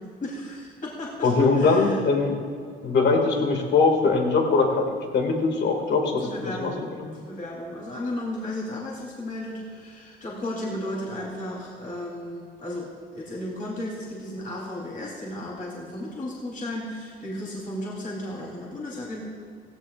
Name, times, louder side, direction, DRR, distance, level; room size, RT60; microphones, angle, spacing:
voice 1, 0.0-2.0 6.2-6.8 7.1-19.2, left 1 dB, 45° left, -4 dB, 3.8 m, -34 dB
voice 2, 1.2-2.4 2.8-7.1, left 4 dB, 60° left, 2 dB, 2.4 m, -22 dB
17.0 x 16.5 x 2.6 m, 2.2 s
cardioid pair, 90°, 20 cm